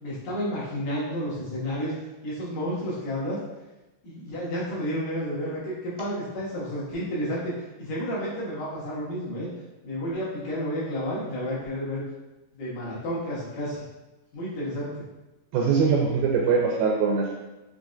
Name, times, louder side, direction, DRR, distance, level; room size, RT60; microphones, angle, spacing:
voice 1, 0.0-1.9 2.2-3.4 4.0-7.5 7.8-9.5 9.8-12.0 12.5-13.8 14.3-14.9, equal, 65° left, -9 dB, 2.5 m, -31 dB
voice 2, 15.5-17.3, right 5 dB, 80° right, -2 dB, 2.1 m, -22 dB
6.3 x 3.1 x 2.5 m, 1.0 s
omnidirectional pair, 4.6 m